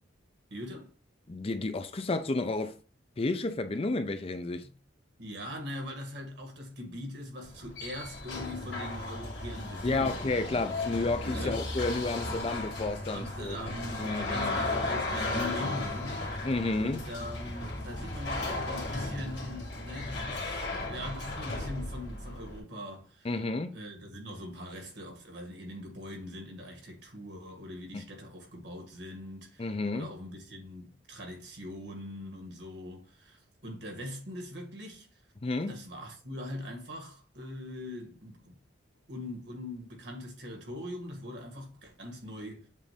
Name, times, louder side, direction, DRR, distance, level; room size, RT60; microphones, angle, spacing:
voice 1, 0.5-0.9 4.6-4.7 5.2-10.6 11.2-11.6 13.1-16.3 16.8-23.3 23.7-35.1 35.7-38.6 39.1-42.7, left 1 dB, 65° right, 1.9 m, -42 dB
voice 2, 1.3-2.7 3.2-4.7 9.8-13.6 14.0-14.6 16.4-17.0 23.2-23.7 27.9-28.0 29.6-30.1 35.4-35.8, left 2 dB, 30° left, 0.5 m, -31 dB
sound 1, 7.4-22.6, left 2 dB, 65° left, 2.1 m, -35 dB
7.5 x 2.6 x 5.0 m
head